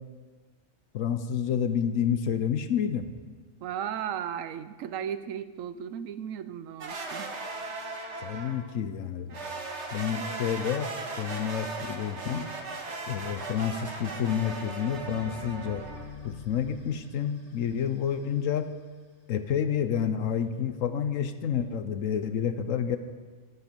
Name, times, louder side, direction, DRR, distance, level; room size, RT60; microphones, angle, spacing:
voice 1, 0.9-3.1 8.2-9.4 9.9-10.9 11.2-12.5 13.1-15.9 16.2-18.7 19.3-23.0, left 8 dB, 80° left, 10 dB, 1.1 m, -29 dB
voice 2, 3.6-7.3, right 9 dB, 80° right, 13 dB, 1.0 m, -35 dB
sound 1, 6.8-8.7 9.3-16.0, right 3 dB, 60° right, 1.6 m, -38 dB
sound 2, 14.9-19.3, left 4 dB, 65° left, 3.2 m, -47 dB
13.0 x 10.5 x 5.3 m, 1.5 s
omnidirectional pair, 1.3 m